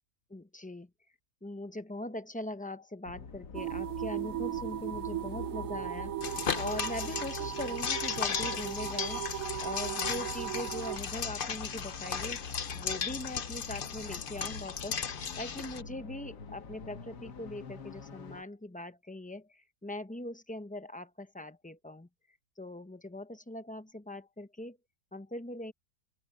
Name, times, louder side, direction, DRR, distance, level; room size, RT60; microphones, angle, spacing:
voice 1, 0.3-0.9 1.4-9.3 9.6-15.1 15.4-22.1 22.6-24.8 25.1-25.7, left 1 dB, 10° left, 0.4 m, -41 dB
sound 1, 3.1-18.4, left 5 dB, 85° left, 2.1 m, -45 dB
sound 2, 3.5-11.0, right 13 dB, 70° right, 0.9 m, -37 dB
sound 3, 6.2-15.8, left 6 dB, 40° left, 0.9 m, -36 dB
omnidirectional pair, 1.7 m